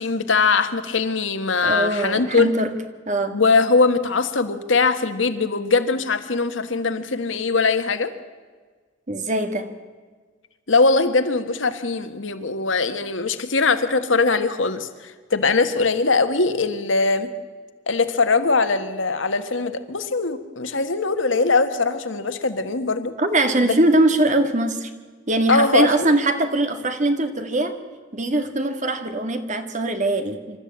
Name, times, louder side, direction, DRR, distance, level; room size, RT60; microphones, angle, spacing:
voice 1, 0.0-2.5 3.3-8.1 10.7-17.3 17.9-23.1 23.6-23.7 25.5-26.1, left 4 dB, 85° left, 1.6 m, -21 dB
voice 2, 1.6-2.7 3.1-3.4 9.1-9.7 23.2-24.9 25.3-27.8 28.1-30.6, right 1 dB, 40° right, 1.9 m, -21 dB
26.5 x 13.5 x 8.7 m
head